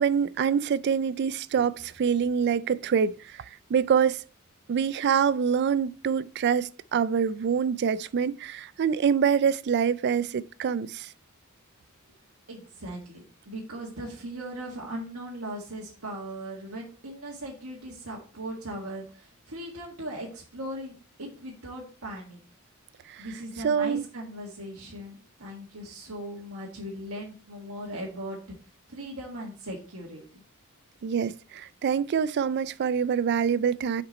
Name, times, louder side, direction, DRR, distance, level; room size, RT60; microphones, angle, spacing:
voice 1, 0.0-3.4 3.7-4.2 4.7-11.1 23.1-23.3 23.6-24.1 31.0-34.0, right 7 dB, 50° right, 0.3 m, -25 dB
voice 2, 12.5-20.9 21.2-22.4 23.2-28.4 28.9-30.4, right 1 dB, 85° right, 1.7 m, -39 dB
6.2 x 5.1 x 4.0 m
head